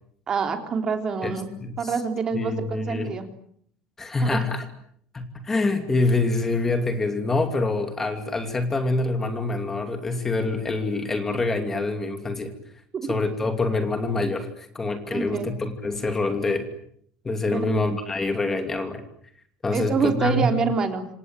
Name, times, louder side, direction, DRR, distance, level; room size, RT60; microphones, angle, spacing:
voice 1, 0.3-1.5 1.8-3.3 4.2-4.4 12.9-13.2 15.1-15.5 17.5-17.8 19.7-21.1, right 5 dB, 25° right, 6 dB, 3.6 m, -26 dB
voice 2, 1.2-1.9 2.3-3.1 4.0-4.7 5.1-12.5 13.1-16.7 17.2-19.0 19.6-20.5, left 2 dB, 15° left, 6 dB, 2.7 m, -26 dB
28.0 x 27.0 x 7.8 m, 0.65 s
cardioid pair, 165°, 3 cm